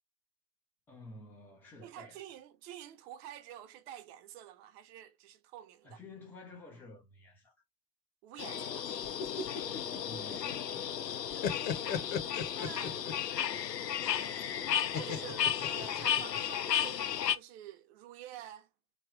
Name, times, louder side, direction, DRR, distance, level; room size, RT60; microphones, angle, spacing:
voice 1, 0.9-2.2 5.8-7.5 9.4-11.2, left 2 dB, 5° left, 0.3 m, -52 dB
voice 2, 1.8-6.0 8.2-9.0 11.8-13.0 14.9-18.7, right 11 dB, 40° right, 0.9 m, -49 dB
sound 1, 8.4-17.3, left 9 dB, 80° left, 0.7 m, -34 dB
sound 2, 9.0-10.8 11.1-13.3 14.9-16.4, left 6 dB, 30° left, 0.8 m, -37 dB
3.2 x 3.0 x 4.7 m
figure-of-eight pair, 95°, 48 cm